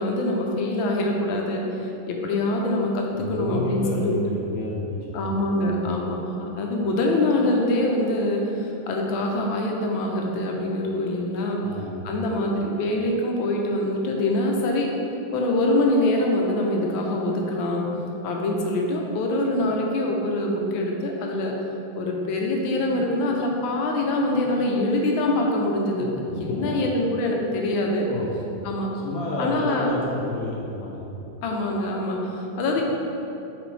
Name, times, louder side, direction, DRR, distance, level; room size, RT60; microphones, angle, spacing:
voice 1, 0.0-4.2 5.1-11.6 12.0-14.9 15.3-17.8 18.2-21.6 21.9-28.1 28.6-28.9 29.4-29.9 31.4-32.8, left 1 dB, 70° left, 0 dB, 1.5 m, -24 dB
voice 2, 3.1-5.9 11.6-12.1 26.0-26.1 26.4-26.8 28.1-28.3 29.0-31.0, left 2 dB, 55° left, -5 dB, 1.0 m, -30 dB
6.0 x 5.1 x 3.2 m, 2.9 s
omnidirectional pair, 2.3 m